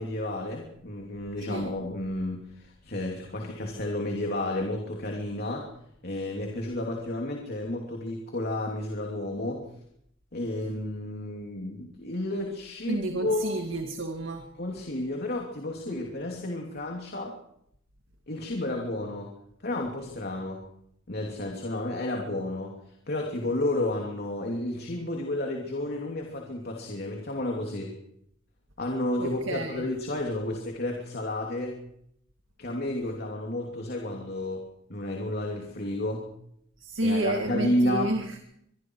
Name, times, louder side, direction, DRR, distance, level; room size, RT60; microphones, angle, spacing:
voice 1, 0.0-5.7 6.0-9.6 10.3-13.5 14.6-17.3 18.3-19.3 19.6-20.6 21.1-22.7 23.1-27.9 28.8-31.8 32.6-34.6 34.9-36.3 37.0-38.1, left 1 dB, 55° left, 1 dB, 2.9 m, -31 dB
voice 2, 12.9-14.5 15.9-16.0 29.2-29.9 36.8-38.4, right 2 dB, 70° right, 5 dB, 2.1 m, -30 dB
24.5 x 23.5 x 4.8 m, 0.74 s
head